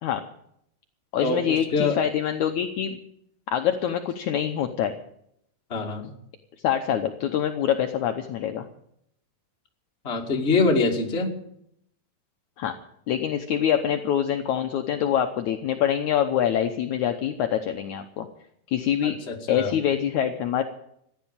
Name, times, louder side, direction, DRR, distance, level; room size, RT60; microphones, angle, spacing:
voice 1, 1.1-3.0 3.5-4.9 6.6-8.7 12.6-12.7 13.1-18.3 18.7-19.1 19.5-20.6, left 9 dB, 80° left, 6 dB, 1.6 m, -25 dB
voice 2, 5.7-6.1 10.0-11.3 19.0-19.7, left 3 dB, 25° left, 1 dB, 1.6 m, -24 dB
15.5 x 10.5 x 8.8 m, 0.74 s
omnidirectional pair, 4.6 m